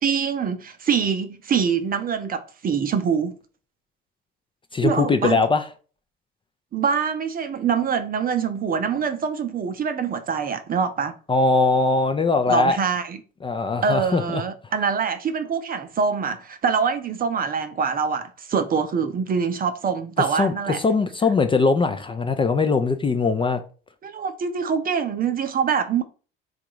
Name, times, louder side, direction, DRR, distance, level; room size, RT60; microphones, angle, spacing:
voice 1, 0.0-3.3 4.8-5.4 6.7-11.1 12.5-13.2 13.8-20.8 24.0-26.0, right 6 dB, 30° right, 0.7 m, -24 dB
voice 2, 4.7-5.6 11.3-12.8 13.4-14.4 20.4-23.6, left 3 dB, 20° left, 0.5 m, -21 dB
3.8 x 2.4 x 4.6 m
hypercardioid pair, 70°, 29 cm